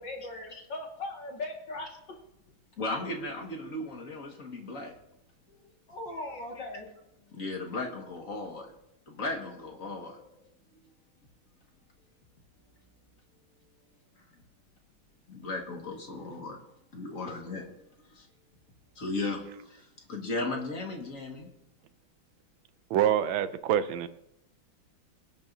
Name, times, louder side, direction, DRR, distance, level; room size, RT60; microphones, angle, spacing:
voice 1, 0.0-1.9 5.9-6.9, left 2 dB, 60° left, 0 dB, 2.6 m, -38 dB
voice 2, 2.8-4.9 5.5-5.6 6.2-6.4 7.3-8.7 9.1-10.2 15.3-16.6 16.9-17.7 18.0-18.3 19.0-21.5, left 2 dB, 40° left, 1 dB, 2.1 m, -36 dB
voice 3, 22.9-24.1, right 10 dB, 80° right, 13 dB, 1.4 m, -26 dB
23.5 x 9.0 x 2.7 m, 0.83 s
omnidirectional pair, 2.2 m